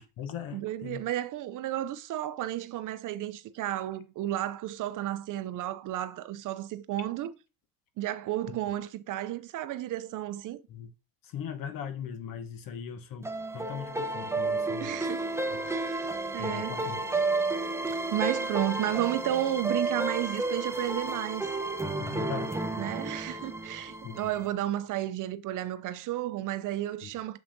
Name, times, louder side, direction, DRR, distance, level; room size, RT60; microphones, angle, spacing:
voice 1, 0.0-1.0 10.7-10.9 11.2-13.3 13.5-14.9 15.5-15.7 16.4-17.1 22.0-22.6 24.0-24.2 27.0-27.1, left 8 dB, 50° left, 1.1 m, -39 dB
voice 2, 0.5-7.3 8.0-10.6 14.8-15.3 15.7-16.8 17.9-21.5 22.8-27.4, right 13 dB, 50° right, 0.5 m, -32 dB
sound 1, 13.2-24.5, right 2 dB, 5° right, 0.7 m, -32 dB
7.2 x 5.6 x 2.6 m
supercardioid pair, 85°, 42 cm